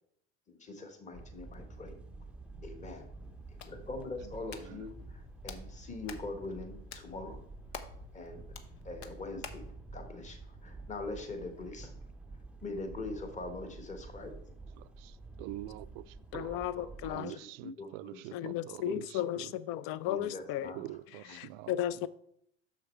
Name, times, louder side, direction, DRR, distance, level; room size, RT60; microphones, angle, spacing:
voice 1, 0.5-2.0 2.6-3.1 3.6-7.4 8.1-8.4 8.8-11.9 12.6-14.3 16.5-18.6 20.1-20.9 21.3-21.4, left 2 dB, 20° left, 1.3 m, -43 dB
sound 1, 1.1-17.2, right 3 dB, 5° right, 0.6 m, -49 dB
Hands, 3.2-9.7, left 7 dB, 70° left, 0.9 m, -50 dB
voice 2, 4.2-4.9 14.8-16.6 17.0-19.5 20.7-21.8, right 16 dB, 50° right, 0.4 m, -45 dB
voice 3, 16.3-17.4 18.3-20.7 21.3-22.1, left 12 dB, 40° left, 0.4 m, -35 dB
6.5 x 6.3 x 4.4 m
hypercardioid pair, 85°, 34 cm